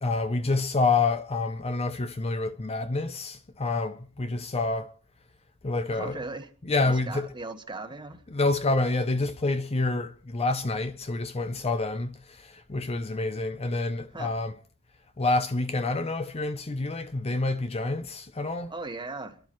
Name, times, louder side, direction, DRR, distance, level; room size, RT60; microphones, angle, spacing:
voice 1, 0.0-4.9 5.6-6.2 6.7-7.3 8.3-14.5 15.2-18.7, left 3 dB, 25° left, 0.6 m, -28 dB
voice 2, 5.9-6.5 6.8-8.2 14.1-14.3 18.7-19.4, right 3 dB, 20° right, 1.4 m, -38 dB
29.5 x 11.5 x 3.1 m
head